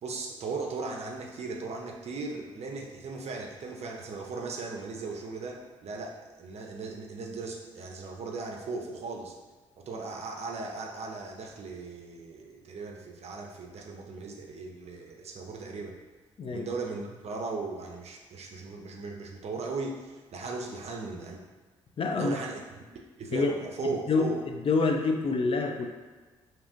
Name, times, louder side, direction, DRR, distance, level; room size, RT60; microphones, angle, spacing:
voice 1, 0.0-9.4 9.9-15.9 16.5-21.4 22.2-22.8 23.2-24.3, right 4 dB, 45° right, 1 dB, 0.6 m, -37 dB
voice 2, 22.0-22.4 23.3-23.5 23.8-24.3 24.6-25.9, left 4 dB, 40° left, 3 dB, 0.4 m, -26 dB
2.7 x 2.4 x 3.6 m, 1.3 s
hypercardioid pair, 45°, 15 cm